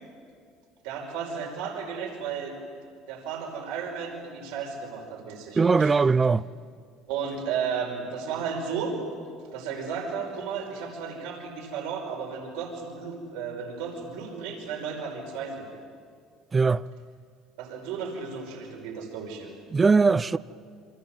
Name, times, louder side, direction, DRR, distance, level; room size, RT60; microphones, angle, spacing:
voice 1, 0.8-2.6 3.1-6.0 7.1-9.0 9.5-15.7 17.6-19.5, right 6 dB, 85° right, 5.3 m, -34 dB
voice 2, 5.6-6.4 16.5-16.8 19.7-20.4, right 4 dB, 25° right, 0.6 m, -20 dB
29.0 x 25.0 x 8.0 m
supercardioid pair, 100°, 0 cm